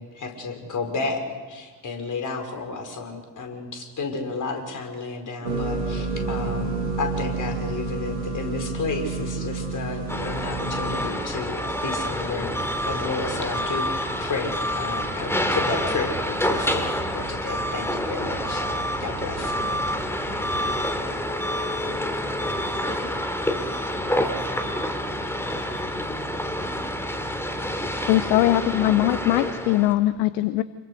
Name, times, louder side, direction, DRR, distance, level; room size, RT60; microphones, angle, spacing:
voice 1, 0.0-6.7 7.0-12.5 12.8-18.7 19.0-19.6, left 4 dB, 40° left, 5.3 m, -32 dB
sound 1, 5.4-11.0, right 3 dB, 85° right, 2.4 m, -29 dB
sound 2, 10.1-29.9, equal, 5° left, 3.0 m, -28 dB
sound 3, 11.8-20.8, right 3 dB, 55° right, 4.0 m, -41 dB
voice 2, 19.5-26.5, left 6 dB, 85° left, 0.8 m, -45 dB
voice 3, 28.1-30.6, left 15 dB, 60° left, 0.9 m, -21 dB
28.0 x 23.0 x 6.7 m
figure-of-eight pair, 50°, 47 cm